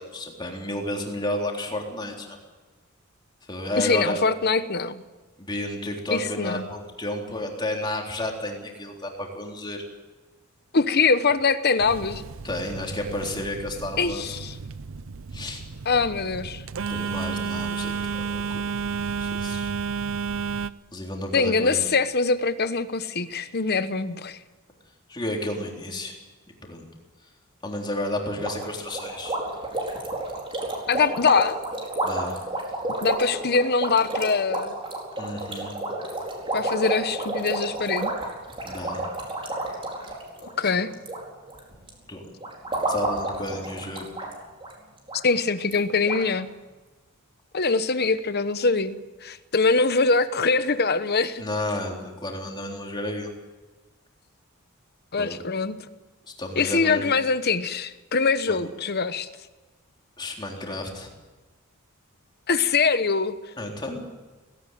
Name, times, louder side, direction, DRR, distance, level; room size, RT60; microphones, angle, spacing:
voice 1, 0.0-2.4 3.5-4.2 5.4-9.8 12.4-14.4 15.3-15.6 16.9-18.8 19.2-19.7 20.9-21.8 25.1-26.2 26.6-26.9 27.6-29.4 32.0-32.4 35.2-35.7 38.7-39.1 40.5-40.7 42.1-42.2 42.8-44.1 51.4-53.3 55.2-55.4 56.3-57.1 58.5-58.6 60.2-61.1 63.6-64.0, left 1 dB, 20° left, 0 dB, 3.6 m, -32 dB
voice 2, 3.8-5.0 6.1-6.7 10.7-12.2 14.0-14.5 15.9-16.6 21.3-24.4 30.9-31.6 33.0-34.8 36.5-38.1 40.6-40.9 45.2-46.5 47.5-51.4 55.1-55.7 56.6-59.3 62.5-63.3, left 4 dB, 45° left, 12 dB, 1.0 m, -23 dB
Telephone, 11.8-20.7, right 5 dB, 60° right, 0.6 m, -32 dB
sound 1, 28.4-41.2 41.5-41.9 42.4-44.3 44.6-44.7 45.1-45.2 45.7-45.8 46.1-46.2, right 2 dB, 25° right, 4.6 m, -30 dB
18.0 x 17.5 x 9.3 m, 1.2 s
head